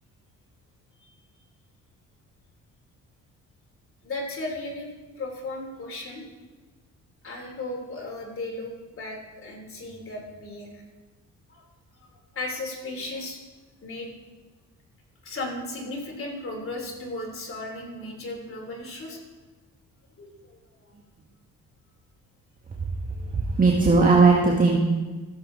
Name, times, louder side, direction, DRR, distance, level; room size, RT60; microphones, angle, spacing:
voice 1, 4.0-6.2 7.2-10.8 11.5-11.6 12.0-12.1 12.3-13.4 13.8-14.1 15.2-19.2 20.2-20.9, left 2 dB, 45° left, 0 dB, 3.2 m, -35 dB
voice 2, 23.3-24.8, right 4 dB, 25° right, -3 dB, 1.6 m, -18 dB
16.0 x 7.4 x 3.9 m, 1.3 s
cardioid pair, 90°, 30 cm